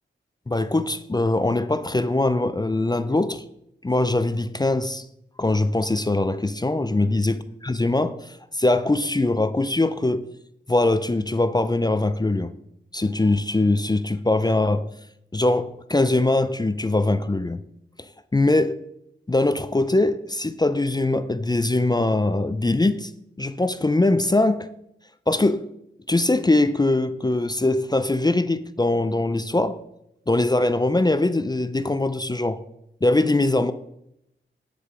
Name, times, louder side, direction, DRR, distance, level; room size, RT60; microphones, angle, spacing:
voice 1, 0.5-3.4 3.8-5.1 5.4-7.4 7.6-10.3 10.7-12.5 12.9-14.8 15.3-17.6 18.0-18.7 19.3-23.1 23.4-24.7 25.3-25.6 26.1-29.8 30.3-32.6 33.0-33.7, left 2 dB, 20° left, 0.5 m, -22 dB
9.3 x 6.9 x 4.9 m
wide cardioid pair, 85°, 21 cm